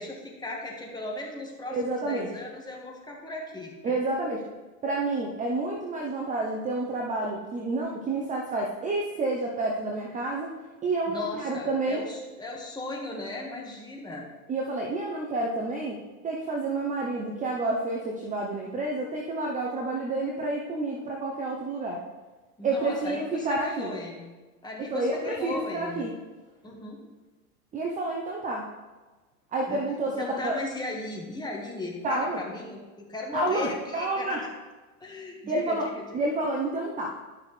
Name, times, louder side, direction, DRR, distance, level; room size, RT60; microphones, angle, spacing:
voice 1, 0.0-3.9 11.1-14.3 22.6-24.3 24.6-26.1 26.6-27.0 29.7-29.8 30.1-34.5 35.0-36.1, left 2 dB, 10° left, -1 dB, 1.6 m, -37 dB
voice 2, 1.7-2.3 3.8-4.4 4.8-10.5 10.8-12.0 14.5-16.0 16.2-22.0 22.6-23.9 24.8-26.1 27.7-28.7 29.5-30.6 32.0-32.4 33.3-34.4 35.5-37.1, right 2 dB, 15° right, -1 dB, 0.8 m, -29 dB
11.5 x 6.3 x 3.3 m, 1.2 s
hypercardioid pair, 115°, 46 cm